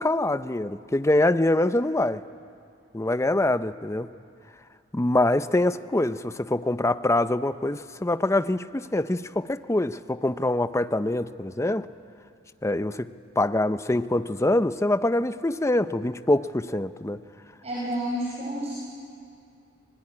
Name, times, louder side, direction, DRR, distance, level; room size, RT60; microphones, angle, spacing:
voice 1, 0.0-2.2 2.9-4.1 4.9-11.9 12.6-13.1 13.4-17.2, left 1 dB, 15° left, 12 dB, 0.6 m, -24 dB
voice 2, 17.6-18.7, equal, 35° right, -5 dB, 4.8 m, -30 dB
26.5 x 20.5 x 9.9 m, 2.4 s
head